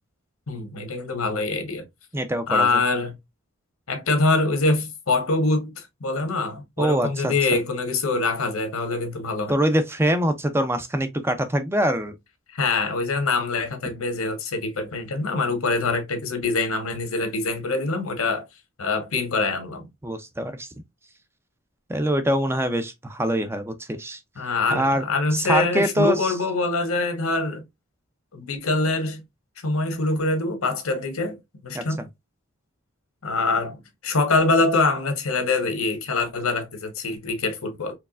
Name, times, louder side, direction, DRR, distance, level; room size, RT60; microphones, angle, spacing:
voice 1, 0.5-1.8 2.5-3.1 3.9-9.5 12.5-18.4 18.8-19.9 24.4-27.6 28.3-29.2 29.6-31.4 31.6-32.1 33.2-33.8 34.0-37.9, left 3 dB, 90° left, 1.3 m, -24 dB
voice 2, 2.1-2.8 6.8-7.3 9.5-12.1 20.0-20.7 21.9-24.2 24.7-25.0 25.3-26.3 31.7-32.1, right 1 dB, 10° right, 0.5 m, -24 dB
4.6 x 3.2 x 2.4 m
head